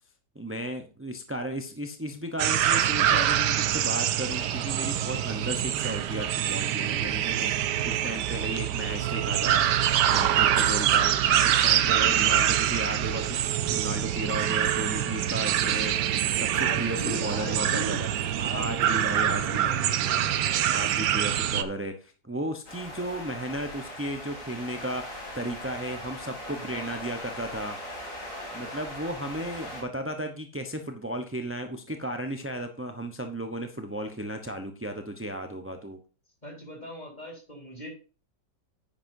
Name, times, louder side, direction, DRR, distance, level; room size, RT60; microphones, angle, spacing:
voice 1, 0.3-11.1 11.4-13.4 13.7-18.1 18.5-19.8 20.7-27.8 28.5-36.0, right 1 dB, 15° right, 5 dB, 0.5 m, -35 dB
sound 1, 2.4-21.6, right 10 dB, 75° right, 1.3 m, -25 dB
voice 2, 11.8-12.1 16.5-18.0 18.4-19.8 26.4-27.0 36.4-37.9, right 1 dB, 25° left, 0 dB, 4.3 m, -39 dB
sound 2, 22.7-29.8, left 1 dB, 50° left, 3.1 m, -40 dB
9.9 x 9.6 x 2.7 m, 0.35 s
omnidirectional pair, 1.9 m